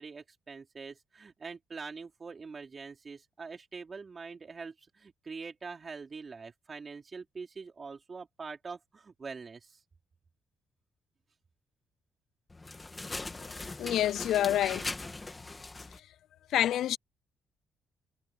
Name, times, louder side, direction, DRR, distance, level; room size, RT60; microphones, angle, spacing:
voice 1, 0.0-9.8, right 4 dB, 35° right, 4.5 m, -44 dB
sound 1, 12.5-16.0, left 2 dB, 20° left, 2.2 m, -40 dB
voice 2, 13.8-14.9 16.5-17.0, left 12 dB, 80° left, 0.3 m, -27 dB
cardioid pair, 90°, 0 cm